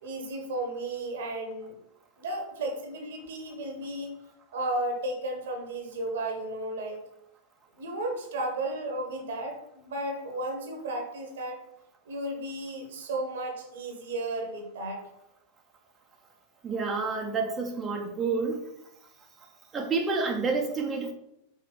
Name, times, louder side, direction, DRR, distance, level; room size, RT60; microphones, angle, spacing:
voice 1, 0.0-1.8 2.2-4.1 4.5-7.0 7.8-11.6 12.1-15.0, right 1 dB, 60° right, 3 dB, 1.3 m, -34 dB
voice 2, 16.6-18.6 19.7-21.1, right 4 dB, 20° right, 1 dB, 0.9 m, -29 dB
5.4 x 4.7 x 4.1 m, 0.79 s
figure-of-eight pair, 90°, 0 cm